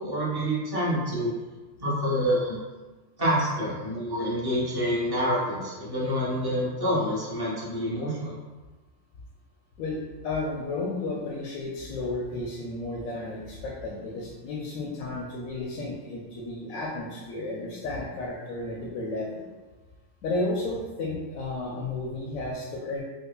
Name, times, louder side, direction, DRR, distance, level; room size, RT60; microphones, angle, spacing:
voice 1, 0.0-1.4 1.8-2.6 3.2-8.3, equal, 20° right, -7 dB, 0.7 m, -27 dB
voice 2, 9.8-19.5 20.2-23.0, left 2 dB, 80° left, -2 dB, 1.0 m, -33 dB
5.3 x 2.1 x 2.2 m, 1.3 s
omnidirectional pair, 1.4 m